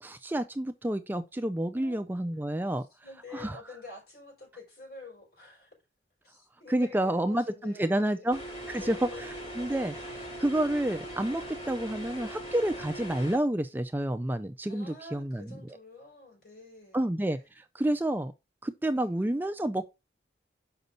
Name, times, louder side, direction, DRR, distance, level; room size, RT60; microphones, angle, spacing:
voice 1, 0.0-2.8 3.3-3.6 6.7-8.4 8.7-15.5 16.9-18.3 18.6-19.9, right 1 dB, 10° right, 0.4 m, -29 dB
voice 2, 1.7-2.2 3.0-5.7 6.2-8.3 8.8-10.1 14.7-17.1 18.9-19.2, left 3 dB, 55° left, 4.5 m, -48 dB
sound 1, 8.3-13.4, right 1 dB, 40° left, 3.2 m, -40 dB
6.8 x 5.1 x 3.9 m
head